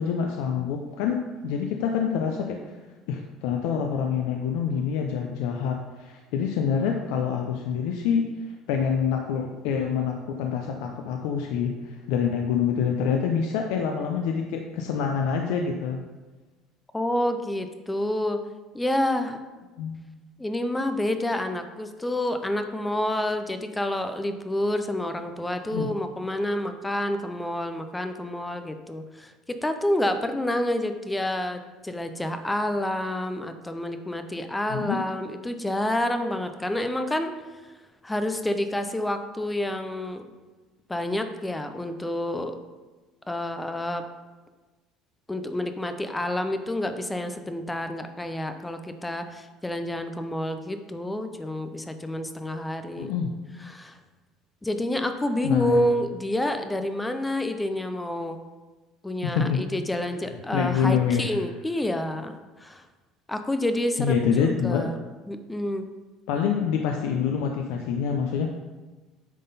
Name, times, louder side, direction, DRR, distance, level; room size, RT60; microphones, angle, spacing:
voice 1, 0.0-2.7 3.1-8.2 8.7-16.0 19.8-20.0 25.7-25.9 34.7-35.0 53.0-53.3 55.4-55.9 59.2-59.6 60.5-61.4 64.0-64.9 66.3-68.5, left 7 dB, 80° left, 3 dB, 0.5 m, -26 dB
voice 2, 16.9-18.4 18.7-19.4 20.4-37.3 38.0-40.2 40.9-42.6 43.3-44.0 45.3-53.1 53.7-54.0 54.6-58.4 59.0-62.3 62.6-62.8 63.3-65.0 65.3-65.9, left 1 dB, 5° left, 8 dB, 0.4 m, -28 dB
9.2 x 3.8 x 4.0 m, 1.2 s
cardioid pair, 175°, 0 cm